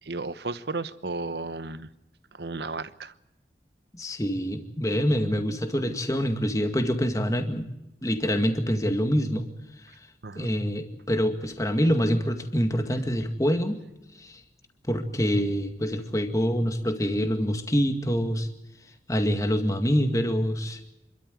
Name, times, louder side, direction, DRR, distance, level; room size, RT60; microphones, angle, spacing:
voice 1, 0.0-1.9 2.3-3.1 10.2-10.5, right 3 dB, 70° right, 14 dB, 1.0 m, -34 dB
voice 2, 3.9-7.7 8.0-9.5 10.4-13.8 14.2-14.4 14.9-18.5 19.1-20.8, equal, 20° left, 7 dB, 2.0 m, -25 dB
27.5 x 13.0 x 9.4 m, 0.92 s
head